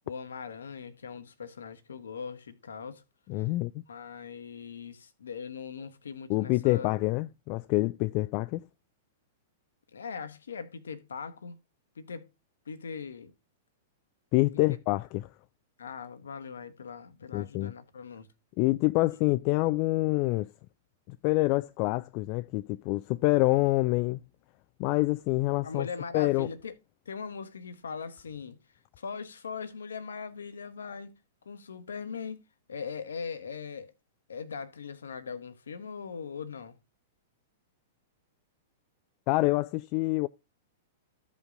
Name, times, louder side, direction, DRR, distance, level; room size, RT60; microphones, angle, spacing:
voice 1, 0.1-3.0 3.4-3.5 3.9-6.9 9.9-11.6 12.0-12.3 12.7-13.3 15.8-18.3 25.6-26.7 27.1-28.6 29.0-31.1 31.4-32.4 32.7-33.9 34.3-36.8, left 6 dB, 70° left, 1.0 m, -40 dB
voice 2, 3.3-3.8 6.3-8.6 14.3-15.3 17.3-17.7 18.6-20.5 21.1-24.2 24.8-25.9 26.1-26.5 39.3-40.3, left 21 dB, 40° left, 0.3 m, -26 dB
14.5 x 5.3 x 2.3 m
figure-of-eight pair, 100°, 0 cm